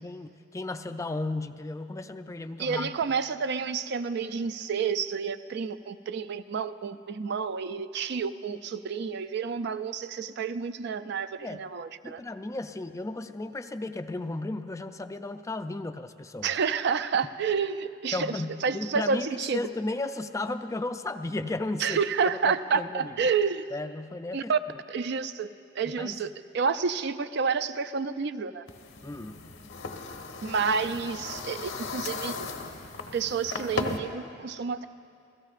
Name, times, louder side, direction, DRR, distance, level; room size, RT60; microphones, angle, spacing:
voice 1, 0.0-3.0 11.4-11.7 12.0-16.6 18.1-22.0 22.5-23.2 23.7-24.5 26.0-26.3 29.0-29.4, left 2 dB, 15° left, 9 dB, 0.4 m, -34 dB
voice 2, 2.6-12.2 16.4-18.3 18.6-19.6 21.8-23.6 24.3-24.6 24.9-25.5 25.8-26.3 26.5-28.6 30.4-32.5 33.1-34.9, right 5 dB, 60° right, 11 dB, 0.4 m, -29 dB
sound 1, 28.7-34.0, left 3 dB, 90° left, 1.2 m, -36 dB
28.0 x 16.5 x 2.5 m, 2.4 s
head